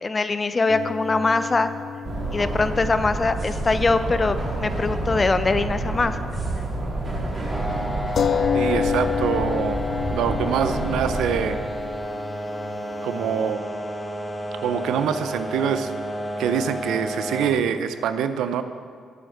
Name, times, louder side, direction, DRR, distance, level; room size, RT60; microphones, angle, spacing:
voice 1, 0.0-1.7 2.3-6.3, left 3 dB, 35° left, 11 dB, 0.8 m, -22 dB
sound 1, 0.7-4.6 4.8-4.9 8.2-13.4, left 7 dB, 60° left, 0.4 m, -30 dB
sound 2, 2.0-11.4, right 2 dB, 40° right, 3.7 m, -29 dB
sound 3, 7.5-17.5, equal, 5° left, 1.9 m, -31 dB
voice 2, 8.5-9.8 10.1-11.6 13.0-13.6 14.6-15.9 16.4-18.6, right 8 dB, 75° right, 10 dB, 0.6 m, -25 dB
12.0 x 7.9 x 6.6 m, 2.1 s
supercardioid pair, 50°, 0 cm